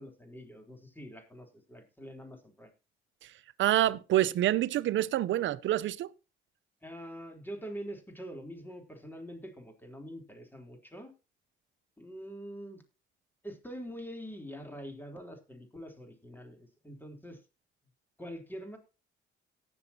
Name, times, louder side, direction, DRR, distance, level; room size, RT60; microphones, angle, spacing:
voice 1, 0.0-2.7 6.8-11.1 12.0-12.8 13.4-17.4 18.2-18.8, equal, 10° left, 3.5 m, -44 dB
voice 2, 3.6-6.1, right 13 dB, 75° right, 0.7 m, -27 dB
18.5 x 7.1 x 2.9 m
cardioid pair, 90°, 20 cm